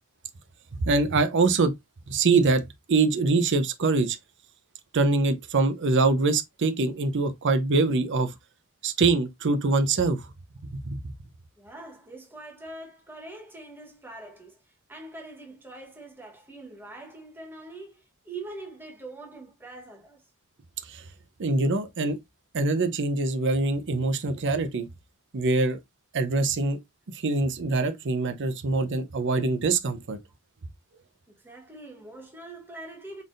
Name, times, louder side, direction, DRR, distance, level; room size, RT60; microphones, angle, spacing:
voice 1, 0.8-1.7 2.1-2.6 2.9-4.2 4.9-8.3 8.8-10.3 10.7-11.0 20.8-21.1 21.4-22.2 22.5-24.9 25.3-25.8 26.1-26.8 27.1-30.2, right 3 dB, 55° right, 0.6 m, -24 dB
voice 2, 11.6-14.6 14.9-20.2 31.3-33.2, right 2 dB, 10° right, 1.1 m, -43 dB
4.0 x 3.4 x 2.5 m
head